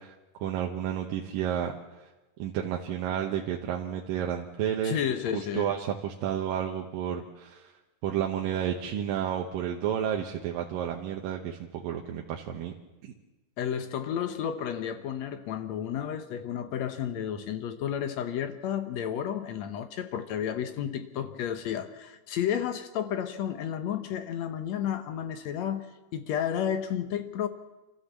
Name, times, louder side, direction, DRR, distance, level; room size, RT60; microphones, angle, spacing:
voice 1, 0.0-1.7 2.0-2.1 2.4-5.0 5.3-7.7 8.0-12.7 13.0-13.1, right 9 dB, 75° right, 2.7 m, -31 dB
voice 2, 4.8-5.7 13.6-25.9 26.1-27.5, left 9 dB, 65° left, 1.9 m, -32 dB
28.5 x 13.5 x 7.3 m
omnidirectional pair, 4.1 m